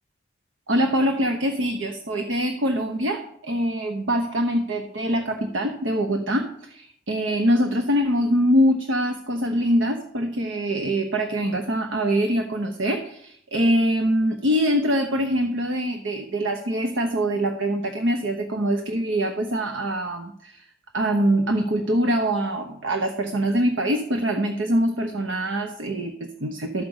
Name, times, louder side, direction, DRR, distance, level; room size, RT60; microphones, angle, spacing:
voice 1, 0.7-20.6 20.9-26.8, equal, 70° right, 5 dB, 0.9 m, -24 dB
13.0 x 5.1 x 7.2 m, 0.69 s
head